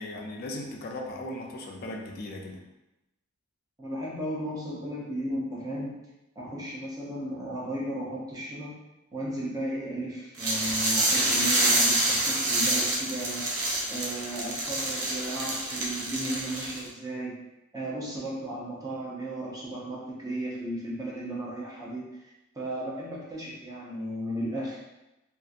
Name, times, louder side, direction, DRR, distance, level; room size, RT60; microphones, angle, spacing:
voice 1, 0.0-2.6, left 1 dB, 45° left, 0 dB, 0.4 m, -37 dB
voice 2, 3.8-5.9 6.4-8.7 9.1-13.4 13.9-17.3 17.7-22.2 22.5-24.8, right 1 dB, 15° right, -5 dB, 0.7 m, -35 dB
sound 1, 10.4-16.9, right 2 dB, 75° right, 0.6 m, -27 dB
2.7 x 2.5 x 2.4 m, 0.97 s
head